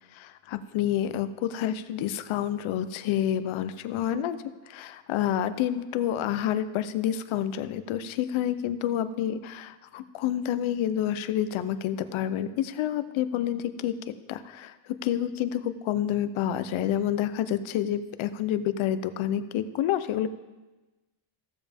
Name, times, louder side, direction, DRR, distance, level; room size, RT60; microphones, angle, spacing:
voice 1, 0.1-4.4 4.7-13.9 14.3-14.7 15.0-20.3, left 10 dB, 70° left, 12 dB, 0.8 m, -28 dB
15.0 x 7.3 x 3.5 m, 1.2 s
cardioid pair, 125°, 50 cm